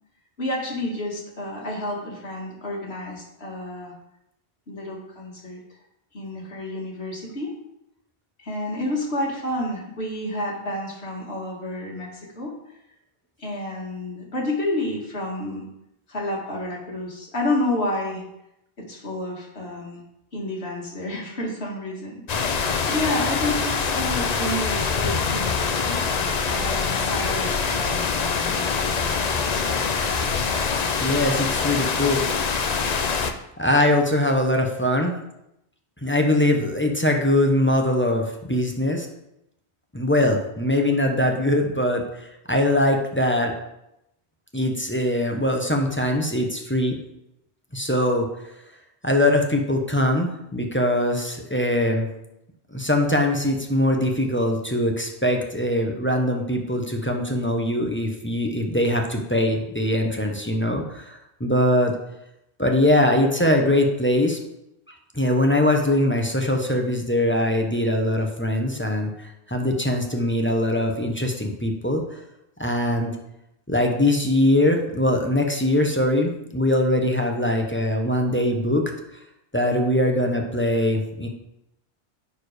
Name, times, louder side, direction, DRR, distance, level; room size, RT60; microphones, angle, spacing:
voice 1, 0.4-3.9 4.7-5.6 6.1-7.5 8.4-12.5 13.4-15.6 16.1-18.2 18.8-20.0 20.3-26.0 26.4-29.6 30.2-30.3, left 1 dB, 70° left, -2 dB, 2.3 m, -30 dB
sound 1, 22.3-33.3, left 5 dB, 45° left, 0.6 m, -24 dB
voice 2, 31.0-32.2 33.6-35.1 36.0-39.1 39.9-43.5 44.5-46.9 47.7-48.3 49.0-52.1 52.7-61.9 62.6-64.4 64.9-72.2 72.6-73.1 73.7-78.9 79.5-81.3, left 1 dB, 10° left, 1 dB, 0.9 m, -22 dB
9.5 x 4.6 x 5.0 m, 0.85 s
omnidirectional pair, 1.1 m